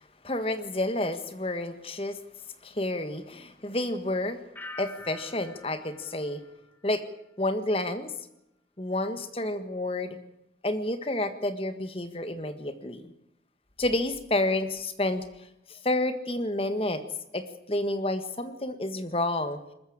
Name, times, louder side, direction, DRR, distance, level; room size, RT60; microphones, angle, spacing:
voice 1, 0.2-2.2 2.6-4.4 4.8-6.4 6.8-7.0 7.4-8.1 8.8-10.2 10.6-13.1 13.8-15.2 15.7-17.0 17.3-19.6, left 1 dB, 30° left, 10 dB, 1.7 m, -30 dB
sound 1, 4.6-7.4 7.7-8.2, left 2 dB, 10° left, 1.4 m, -47 dB
21.0 x 14.0 x 8.8 m, 0.85 s
head